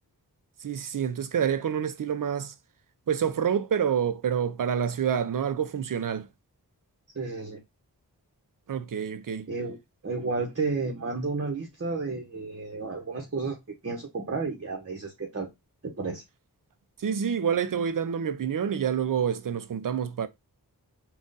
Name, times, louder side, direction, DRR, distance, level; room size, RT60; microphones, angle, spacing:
voice 1, 0.6-2.5 3.1-6.3 8.7-9.5 17.0-20.3, right 8 dB, 55° right, 0.6 m, -27 dB
voice 2, 7.1-7.6 9.5-9.8 10.0-13.6 13.8-15.5 15.8-16.2, right 4 dB, 40° right, 1.0 m, -32 dB
3.7 x 2.4 x 3.9 m
wide cardioid pair, 45°, 38 cm